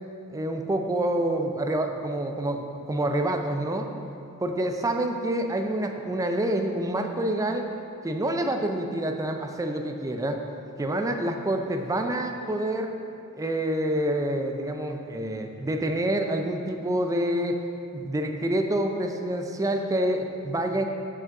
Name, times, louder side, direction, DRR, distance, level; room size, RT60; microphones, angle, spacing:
voice 1, 0.3-3.9 4.4-7.7 8.0-10.4 10.8-12.9 13.4-17.6 17.9-20.8, right 1 dB, 15° right, 4 dB, 0.4 m, -27 dB
6.2 x 4.9 x 5.8 m, 2.6 s
head